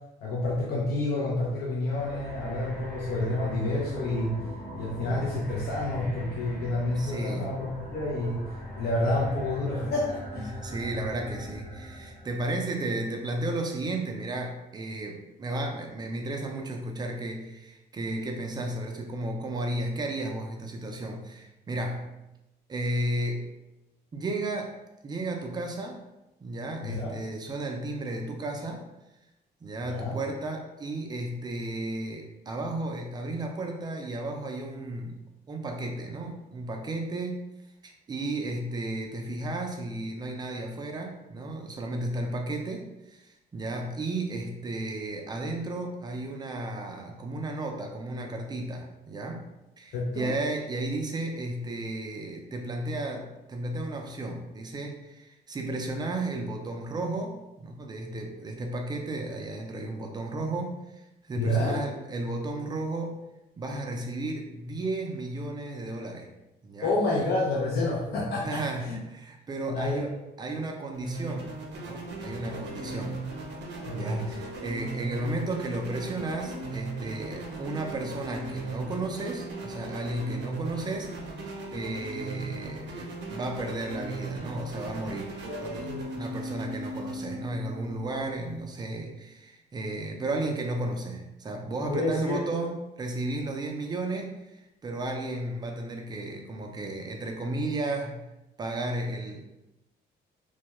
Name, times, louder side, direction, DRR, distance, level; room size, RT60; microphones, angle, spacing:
voice 1, 0.2-4.3 4.7-8.4 8.8-10.5 26.8-27.1 29.9-30.2 49.9-50.3 61.4-61.8 66.8-68.6 68.9-69.0 69.7-70.0 72.3-73.0 73.8-74.2 85.4-86.1 91.9-92.4, left 2 dB, 65° left, -4 dB, 0.5 m, -29 dB
sound 1, 1.8-12.5, equal, 15° left, 0.8 m, -40 dB
voice 2, 7.0-7.5 10.4-22.1 22.7-23.5 24.1-24.7 25.0-26.0 26.4-28.9 29.6-35.2 35.5-37.4 37.8-49.5 49.8-63.2 63.6-66.3 66.6-67.0 68.4-71.5 71.8-73.1 73.9-85.3 85.6-85.9 86.2-98.2 98.6-99.4, right 2 dB, 25° right, 2 dB, 0.3 m, -34 dB
sound 2, 70.9-88.7, right 2 dB, 80° right, 0.6 m, -38 dB
2.3 x 2.1 x 2.9 m, 0.95 s
cardioid pair, 150°, 18 cm